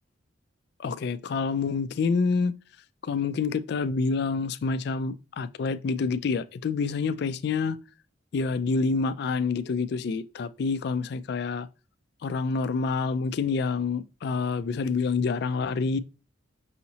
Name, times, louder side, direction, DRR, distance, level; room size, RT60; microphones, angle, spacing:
voice 1, 0.8-2.5 3.0-7.8 8.3-11.7 12.2-16.0, left 4 dB, 55° left, 0.3 m, -27 dB
5.6 x 2.8 x 2.7 m
head